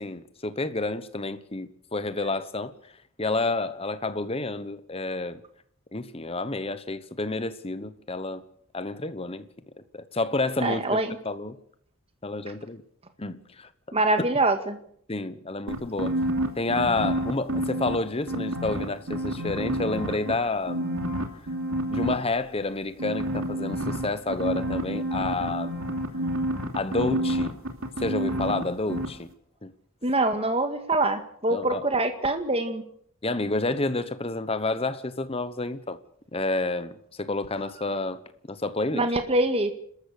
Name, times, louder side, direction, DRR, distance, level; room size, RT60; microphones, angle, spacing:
voice 1, 0.0-2.7 3.2-5.4 5.9-8.4 8.7-9.5 9.9-11.0 11.2-11.6 12.2-12.8 13.2-13.7 15.1-16.2 16.6-20.9 21.7-25.8 26.7-27.5 28.0-29.3 29.6-29.7 31.5-31.8 33.2-36.0 36.3-38.2 38.5-39.1, left 2 dB, 25° left, 1.1 m, -29 dB
voice 2, 10.6-11.2 13.9-14.8 30.0-32.8 38.9-39.7, right 2 dB, 25° right, 2.0 m, -24 dB
sound 1, 15.7-17.9 18.3-20.3 20.7-22.1 23.0-28.6 28.9-29.1, right 1 dB, 75° right, 2.9 m, -28 dB
30.0 x 13.5 x 6.7 m
head